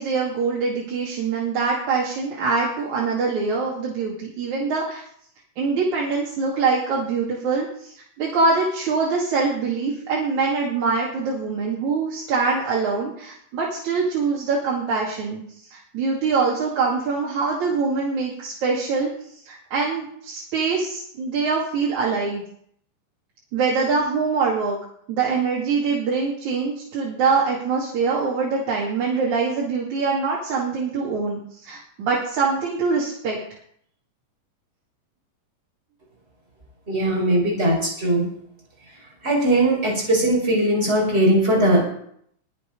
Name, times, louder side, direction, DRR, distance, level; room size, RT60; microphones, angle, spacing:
voice 1, 0.0-5.0 5.6-15.4 15.7-19.1 19.5-22.4 23.5-24.8 25.1-33.4, right 4 dB, 60° right, -4 dB, 3.7 m, -24 dB
voice 2, 36.9-38.3 39.2-41.8, right 1 dB, 15° right, -1 dB, 5.4 m, -19 dB
20.5 x 7.8 x 5.3 m, 0.65 s
omnidirectional pair, 3.8 m